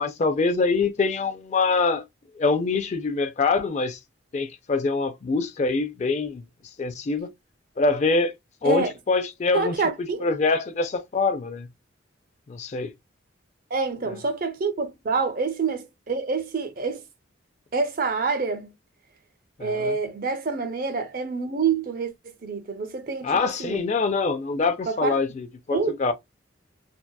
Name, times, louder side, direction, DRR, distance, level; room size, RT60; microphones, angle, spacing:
voice 1, 0.0-2.0 2.4-4.0 4.3-6.4 6.8-7.3 7.8-8.3 8.6-11.7 12.5-12.9 19.6-19.9 23.2-26.1, left 4 dB, 35° left, 0.3 m, -24 dB
voice 2, 9.5-10.3 13.7-17.0 17.7-18.7 19.6-22.1 22.4-23.8 24.9-25.2 25.7-25.9, right 4 dB, 45° right, 0.5 m, -27 dB
2.7 x 2.2 x 2.2 m
head